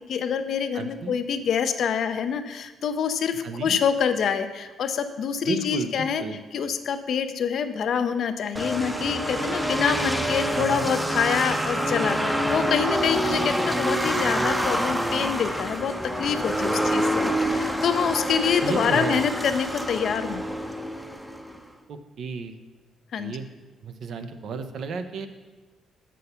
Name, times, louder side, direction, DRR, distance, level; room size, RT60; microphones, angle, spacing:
voice 1, 0.0-6.2 6.5-20.4 23.1-23.4, left 7 dB, 65° left, 9 dB, 0.5 m, -26 dB
voice 2, 0.7-1.1 3.4-3.8 5.4-6.4 10.5-10.9 18.6-19.2 21.9-22.5 23.2-23.5 23.8-25.3, right 4 dB, 65° right, 8 dB, 0.6 m, -33 dB
sound 1, 8.6-21.6, right 1 dB, 5° right, 0.6 m, -26 dB
6.7 x 6.3 x 5.5 m, 1.3 s
cardioid pair, 90°, 0 cm